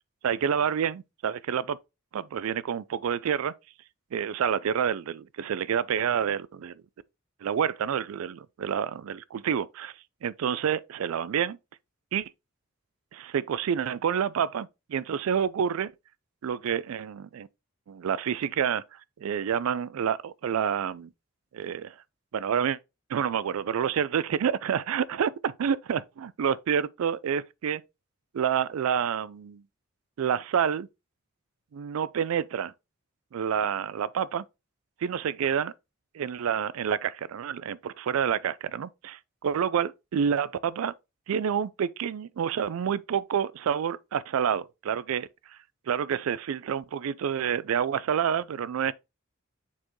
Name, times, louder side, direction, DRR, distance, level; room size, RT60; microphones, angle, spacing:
voice 1, 0.2-1.8 2.1-3.5 4.1-6.8 7.4-9.9 10.2-11.6 12.1-12.3 13.1-15.9 16.4-17.5 17.9-18.8 19.2-21.1 21.5-21.9 22.3-22.8 23.1-27.8 28.3-29.6 30.2-30.9 31.7-32.7 33.3-34.4 35.0-35.7 36.1-40.9 41.3-45.6 45.9-48.9, right 8 dB, 80° right, 0.4 m, -28 dB
7.1 x 4.4 x 3.0 m
head